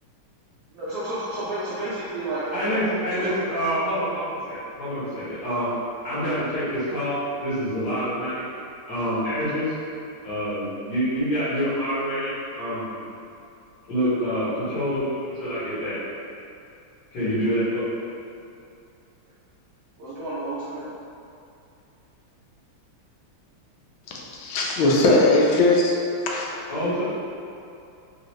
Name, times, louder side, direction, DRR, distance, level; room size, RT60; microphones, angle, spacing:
voice 1, 0.7-3.3 20.0-20.9, right 1 dB, 75° right, -11 dB, 0.8 m, -31 dB
voice 2, 2.5-5.7 6.0-8.5 8.9-9.6 10.2-13.0 13.9-16.0 17.1-17.9 26.7-27.0, equal, 55° left, -13 dB, 1.7 m, -26 dB
voice 3, 24.3-26.0 26.3-26.5, left 2 dB, 75° left, -3 dB, 1.3 m, -19 dB
3.8 x 2.4 x 3.0 m, 2.6 s
omnidirectional pair, 2.4 m